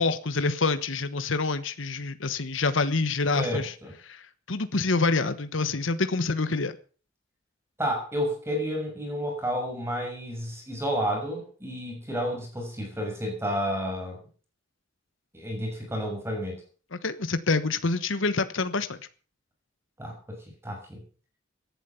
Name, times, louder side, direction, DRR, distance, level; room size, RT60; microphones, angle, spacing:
voice 1, 0.0-3.7 4.0-6.7 16.9-19.0, left 3 dB, 75° left, 12 dB, 1.1 m, -27 dB
voice 2, 3.3-3.9 7.8-14.2 15.3-16.6 20.0-21.0, equal, 15° right, 2 dB, 6.5 m, -31 dB
18.0 x 11.5 x 5.7 m, 0.40 s
head